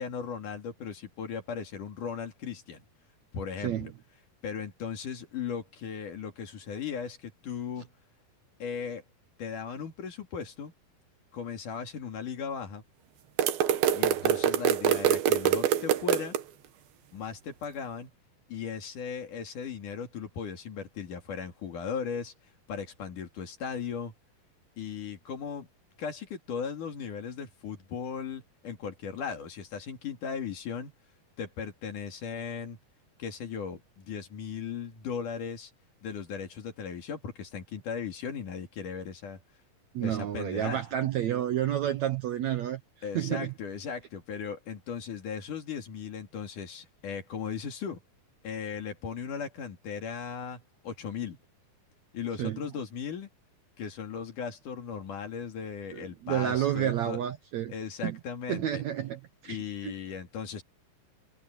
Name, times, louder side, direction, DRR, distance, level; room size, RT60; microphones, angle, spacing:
voice 1, 0.0-2.9 3.3-3.9 4.4-7.9 8.6-9.0 9.4-10.7 11.3-12.8 13.9-16.4 17.1-18.1 18.5-22.3 22.7-24.1 24.8-25.7 26.0-30.9 31.4-32.8 33.2-35.7 36.0-39.4 40.0-40.8 43.0-48.0 48.4-51.4 52.1-53.3 53.8-57.2 57.7-58.8 59.5-60.6, left 6 dB, 60° left, 4.0 m, -37 dB
voice 2, 3.6-3.9 39.9-42.8 43.1-43.5 52.4-52.6 55.9-57.7 58.0-58.2 58.5-59.6 59.8-59.9, right 11 dB, 70° right, 1.7 m, -30 dB
sound 1, 13.4-16.4, right 10 dB, 85° right, 3.1 m, -25 dB
omnidirectional pair, 4.1 m